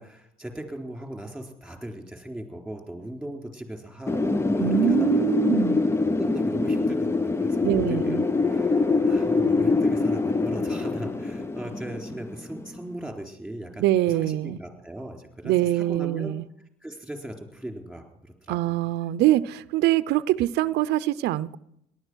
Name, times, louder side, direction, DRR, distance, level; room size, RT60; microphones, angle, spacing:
voice 1, 0.0-5.2 6.1-16.4 16.8-18.6, right 1 dB, ahead, 3 dB, 3.8 m, -38 dB
Wind, 4.1-12.8, left 3 dB, 15° left, 0.5 m, -24 dB
voice 2, 4.6-5.8 7.6-8.2 13.8-14.6 15.4-16.4 18.5-21.6, right 14 dB, 80° right, 15 dB, 0.6 m, -24 dB
18.5 x 11.5 x 6.3 m, 0.77 s
cardioid pair, 110°, 17 cm